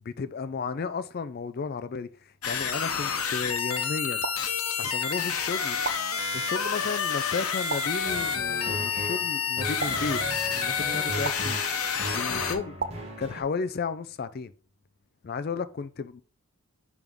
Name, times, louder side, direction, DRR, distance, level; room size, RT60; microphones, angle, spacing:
voice 1, 0.0-4.3 4.8-5.8 6.3-10.2 10.5-11.6 12.1-12.8 13.2-14.5 15.2-16.2, left 5 dB, 45° left, 0.3 m, -33 dB
sound 1, 2.4-12.6, left 6 dB, 80° left, 0.9 m, -29 dB
sound 2, 4.2-5.1 5.8-6.7 7.7-8.5 9.8-10.7 11.2-12.0 12.8-13.8, right 4 dB, 45° right, 0.5 m, -38 dB
sound 3, 8.0-13.4, right 1 dB, 25° right, 1.3 m, -37 dB
6.1 x 3.6 x 5.2 m
head